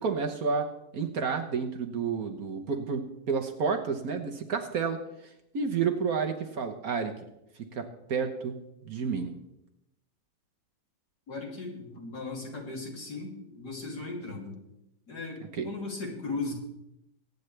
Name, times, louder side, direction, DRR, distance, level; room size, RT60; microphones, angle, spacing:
voice 1, 0.0-5.0 5.5-7.1 7.7-8.6 8.8-9.4 15.6-15.7, right 5 dB, 55° right, 5 dB, 1.4 m, -30 dB
voice 2, 11.3-14.6 15.1-16.5, left 3 dB, 60° left, -2 dB, 3.5 m, -37 dB
22.5 x 9.4 x 3.3 m, 0.87 s
omnidirectional pair, 2.0 m